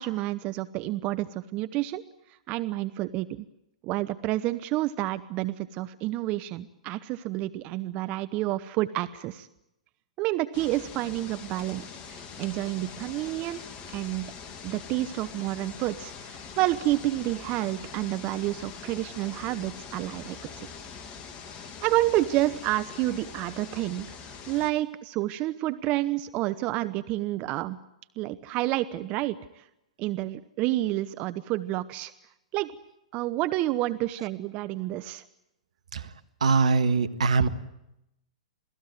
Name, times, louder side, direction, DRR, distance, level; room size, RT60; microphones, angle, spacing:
voice 1, 0.0-2.0 2.5-3.4 3.8-9.5 10.2-14.3 14.6-20.7 21.8-24.2 24.5-27.8 28.2-29.6 30.0-32.1 32.5-32.7 33.1-35.2, right 16 dB, 35° right, 13 dB, 0.9 m, -29 dB
sound 1, 10.5-24.7, left 6 dB, 30° left, 2.4 m, -43 dB
voice 2, 35.9-37.5, right 4 dB, 70° right, 11 dB, 1.6 m, -23 dB
27.5 x 18.0 x 9.4 m, 0.86 s
figure-of-eight pair, 110°, 4 cm